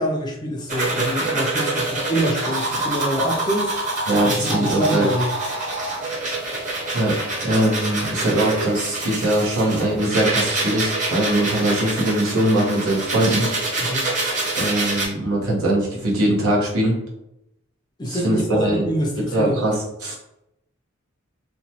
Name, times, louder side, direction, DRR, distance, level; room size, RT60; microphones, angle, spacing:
voice 1, 0.0-3.7 4.2-5.3 13.8-14.2 18.0-19.6, equal, 20° left, 0 dB, 0.4 m, -25 dB
sound 1, 0.7-15.1, right 2 dB, 35° right, 0.8 m, -26 dB
voice 2, 4.1-5.1 6.9-7.1 7.4-13.5 14.6-17.0 18.1-18.8 19.3-20.1, right 1 dB, 90° right, -3 dB, 1.0 m, -21 dB
2.9 x 2.2 x 2.7 m, 0.83 s
head